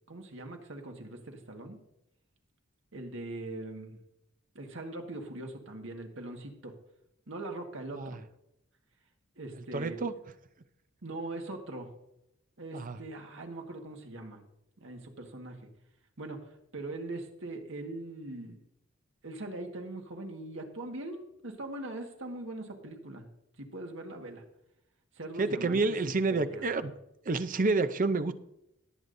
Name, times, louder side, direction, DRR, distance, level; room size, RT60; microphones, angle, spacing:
voice 1, 0.1-1.8 2.9-4.0 4.5-6.7 7.3-8.2 9.4-10.0 11.0-11.9 12.6-14.4 14.8-15.6 16.2-16.4 16.7-18.6 19.2-23.3 23.6-24.4 25.1-25.8 26.3-26.6, right 2 dB, 65° right, 3 dB, 1.6 m, -41 dB
voice 2, 9.7-10.1 12.7-13.0 25.4-26.9 27.3-28.3, right 3 dB, 40° right, 11 dB, 0.6 m, -29 dB
18.0 x 8.2 x 2.6 m, 0.83 s
head